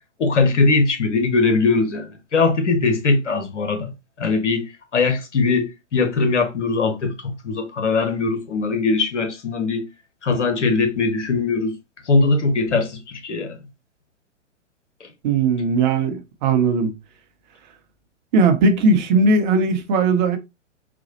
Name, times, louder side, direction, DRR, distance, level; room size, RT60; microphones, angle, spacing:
voice 1, 0.2-3.9 4.2-9.9 10.2-11.7 12.1-13.6 15.0-15.1, left 3 dB, 70° left, 1.1 m, -20 dB
voice 2, 15.2-16.9 18.3-20.4, right 3 dB, 40° right, 0.8 m, -18 dB
4.2 x 2.2 x 2.8 m
figure-of-eight pair, 110°, 37 cm